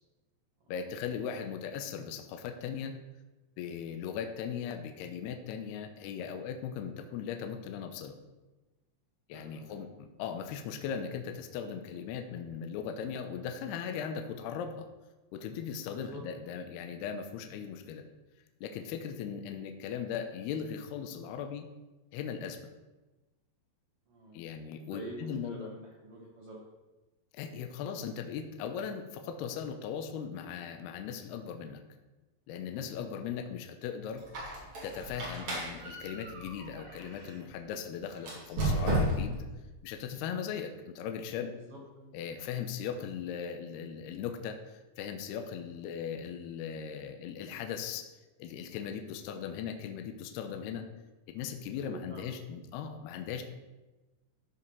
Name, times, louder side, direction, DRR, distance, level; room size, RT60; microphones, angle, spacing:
voice 1, 0.7-3.0 3.6-8.2 9.3-14.9 15.3-18.0 18.6-21.7 22.1-22.6 24.3-25.6 27.3-31.8 32.5-34.2 34.8-39.4 39.8-41.6 42.1-48.1 48.4-50.9 51.3-53.4, left 7 dB, 80° left, 6 dB, 2.6 m, -38 dB
voice 2, 9.3-9.8 15.9-16.2 24.1-24.4 24.9-26.6 41.5-42.2 51.7-52.3, right 1 dB, 70° right, -3 dB, 1.4 m, -47 dB
Squeak, 34.2-37.4 38.2-39.5, right 1 dB, 45° right, 3.7 m, -33 dB
13.0 x 5.0 x 5.5 m, 1.1 s
omnidirectional pair, 5.0 m